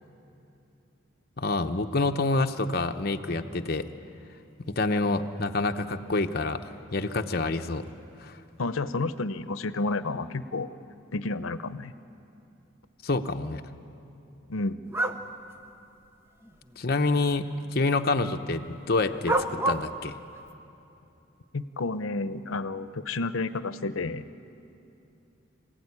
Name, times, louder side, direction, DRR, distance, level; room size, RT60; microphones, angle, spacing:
voice 1, 1.4-3.9 4.6-7.8 8.2-8.3 13.0-13.6 16.8-20.2, left 3 dB, 50° left, 6 dB, 0.8 m, -27 dB
voice 2, 8.6-10.7 11.1-11.9 14.5-14.8 21.5-24.3, left 3 dB, 85° left, 13 dB, 0.8 m, -30 dB
sound 1, 14.9-15.2 16.5-16.6 19.3-19.9, right 1 dB, 10° right, 0.8 m, -26 dB
25.5 x 15.5 x 9.7 m, 2.8 s
head